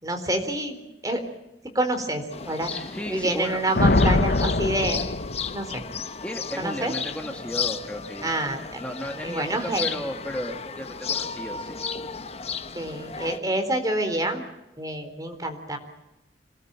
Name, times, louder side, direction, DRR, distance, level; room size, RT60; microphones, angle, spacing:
voice 1, 0.0-1.2 1.7-2.7 3.1-5.1 5.5-5.8 6.6-6.9 8.2-8.8 9.2-9.9 12.7-14.4 14.8-15.8, right 1 dB, 20° right, 5 dB, 3.9 m, -27 dB
sound 1, 2.3-13.4, left 6 dB, 35° left, 1.1 m, -34 dB
voice 2, 2.7-3.6 6.2-8.3 8.8-11.8 12.2-12.3, equal, 5° left, 2 dB, 2.2 m, -34 dB
Thunder, 3.7-6.0, left 2 dB, 55° left, 0.9 m, -22 dB
26.5 x 19.0 x 8.9 m, 0.94 s
head